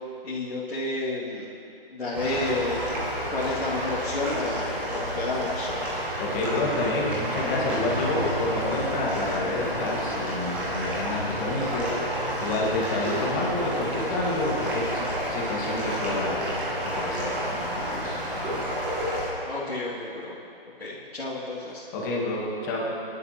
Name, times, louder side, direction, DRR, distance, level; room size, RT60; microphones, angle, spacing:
voice 1, 0.2-1.5 1.9-2.8 3.3-5.8 19.5-20.4 20.8-21.8, left 2 dB, 85° left, -9 dB, 2.5 m, -31 dB
sound 1, 2.1-19.3, equal, 5° right, 0.6 m, -30 dB
voice 2, 6.2-16.5 16.8-18.2 21.9-22.8, left 2 dB, 20° left, -3 dB, 1.7 m, -29 dB
22.0 x 11.0 x 3.0 m, 2.7 s
figure-of-eight pair, 155°, 30 cm